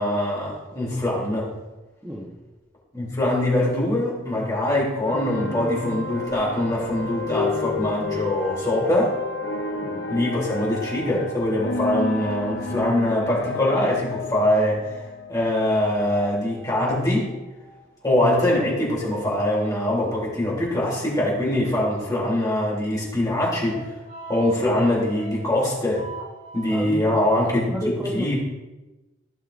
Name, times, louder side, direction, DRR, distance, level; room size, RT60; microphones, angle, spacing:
voice 1, 0.0-1.5 2.9-9.1 10.1-14.9 15.3-17.3 18.0-23.9 24.3-26.0 26.5-27.7 28.1-28.3, left 1 dB, 20° left, -5 dB, 2.7 m, -23 dB
voice 2, 2.0-2.4 9.8-10.1 26.7-27.2 27.7-28.3, equal, 10° right, -4 dB, 0.8 m, -31 dB
sound 1, 5.0-16.3, left 3 dB, 55° left, 0.6 m, -31 dB
sound 2, 16.0-18.0 20.9-21.0 22.5-22.6 23.0-23.1 23.6-26.8, right 4 dB, 75° right, 3.0 m, -41 dB
15.5 x 5.5 x 2.5 m, 1.1 s
head